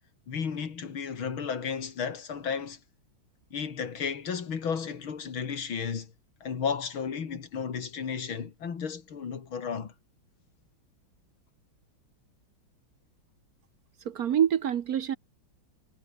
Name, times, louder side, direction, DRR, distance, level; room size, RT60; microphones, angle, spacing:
voice 1, 0.3-2.8 3.5-6.1 6.4-9.9, left 6 dB, 90° left, 3.2 m, -33 dB
voice 2, 14.0-15.2, right 9 dB, 55° right, 1.1 m, -26 dB
omnidirectional pair, 2.2 m